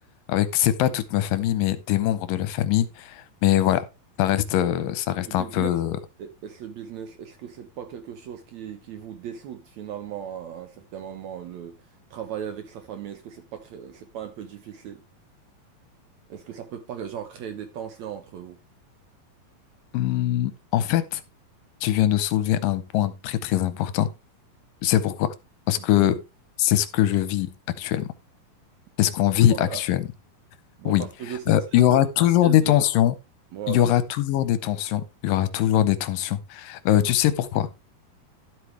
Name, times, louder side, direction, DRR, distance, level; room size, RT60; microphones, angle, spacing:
voice 1, 0.3-3.9 4.2-6.0 19.9-21.2 21.8-24.1 24.8-25.3 25.7-26.2 26.6-27.5 27.8-28.1 29.0-30.0 30.9-31.1 31.5-33.1 33.7-37.8, left 12 dB, 80° left, 2.3 m, -22 dB
voice 2, 5.1-5.8 6.2-15.0 16.3-18.6 25.8-26.1 29.5-29.8 30.8-32.9 33.5-33.9, right 9 dB, 70° right, 1.8 m, -37 dB
12.5 x 8.2 x 3.2 m
omnidirectional pair, 4.1 m